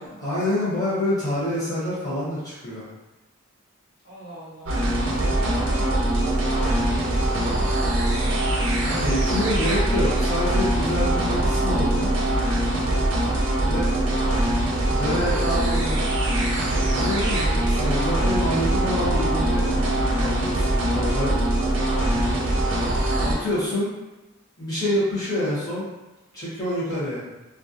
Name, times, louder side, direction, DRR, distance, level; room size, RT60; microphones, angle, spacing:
voice 1, 0.2-2.9 8.8-12.1 13.6-13.9 14.9-16.0 16.8-21.4 22.1-22.5 23.2-23.9 24.6-25.9 26.3-27.2, left 1 dB, 15° left, -12 dB, 0.9 m, -27 dB
voice 2, 4.0-4.7 5.2-8.1 14.1-14.3 15.3-16.4, equal, 75° left, -9 dB, 0.9 m, -39 dB
sound 1, 4.7-23.4, right 1 dB, 60° right, 0.4 m, -22 dB
2.3 x 2.1 x 2.6 m, 1.1 s
head